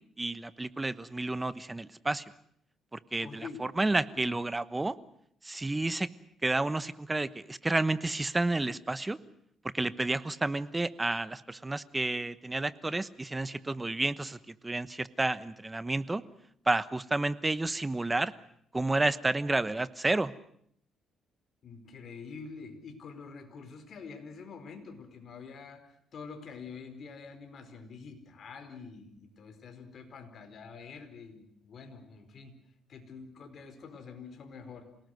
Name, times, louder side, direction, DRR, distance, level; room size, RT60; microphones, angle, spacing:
voice 1, 0.2-2.2 2.9-5.0 5.4-6.1 6.4-9.2 9.7-16.2 16.7-18.3 18.7-20.3, right 2 dB, 15° right, 15 dB, 1.1 m, -30 dB
voice 2, 3.2-3.7 4.3-4.4 21.6-32.5 32.9-34.9, left 5 dB, 55° left, 7 dB, 4.6 m, -46 dB
27.5 x 19.0 x 7.9 m, 0.68 s
cardioid pair, 105°, 0 cm